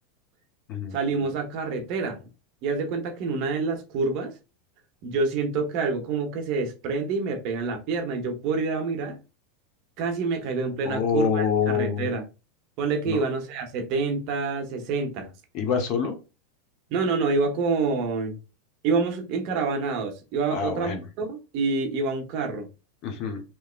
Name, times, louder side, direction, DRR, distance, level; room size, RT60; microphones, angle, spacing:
voice 1, 0.9-2.2 2.6-4.3 5.0-9.2 10.0-12.2 12.8-15.3 16.9-18.4 18.8-22.7, right 4 dB, 45° right, 0.8 m, -27 dB
voice 2, 10.8-12.1 13.1-13.2 15.5-16.1 20.5-21.0 23.0-23.4, left 6 dB, 40° left, 0.8 m, -26 dB
3.4 x 3.0 x 2.4 m
supercardioid pair, 155°, 0 cm